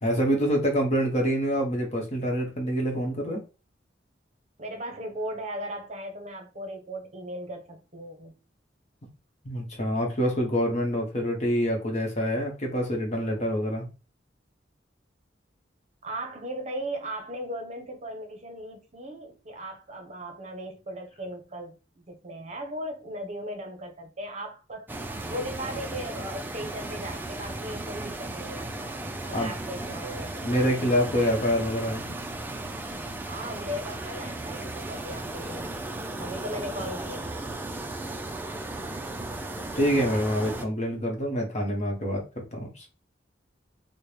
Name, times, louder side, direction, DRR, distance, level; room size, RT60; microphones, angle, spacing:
voice 1, 0.0-3.4 9.4-13.9 29.3-29.5 29.8-29.9 30.4-32.2 39.7-42.8, equal, 40° left, 1.0 m, -26 dB
voice 2, 4.6-8.3 16.0-24.9 25.3-28.7 29.3-30.5 33.3-35.8 36.2-37.4, right 1 dB, 40° right, 0.8 m, -37 dB
sound 1, 24.9-40.6, right 2 dB, 10° right, 0.4 m, -36 dB
4.3 x 2.1 x 3.3 m
head